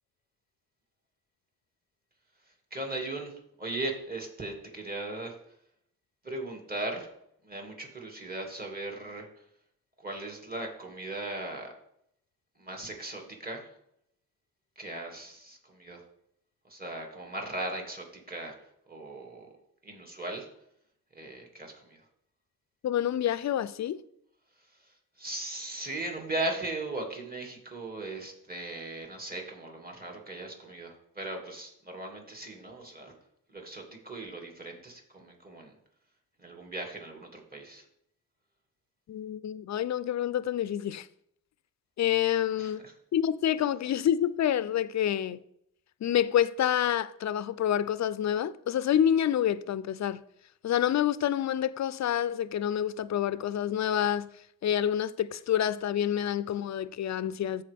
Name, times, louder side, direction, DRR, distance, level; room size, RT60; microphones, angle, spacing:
voice 1, 2.7-5.4 6.2-7.1 7.4-9.3 10.0-11.7 12.6-13.7 14.8-16.0 16.6-18.6 18.9-19.5 19.8-20.5 21.1-22.0 24.6-33.1 33.5-35.7 36.4-37.9 42.6-42.9, right 2 dB, 25° right, 2.2 m, -38 dB
voice 2, 22.8-24.0 39.1-41.1 42.0-42.9 43.1-45.4 46.0-50.2 50.6-54.3 54.6-57.6, left 10 dB, 55° left, 0.4 m, -28 dB
13.5 x 4.7 x 3.5 m
cardioid pair, 90°, 34 cm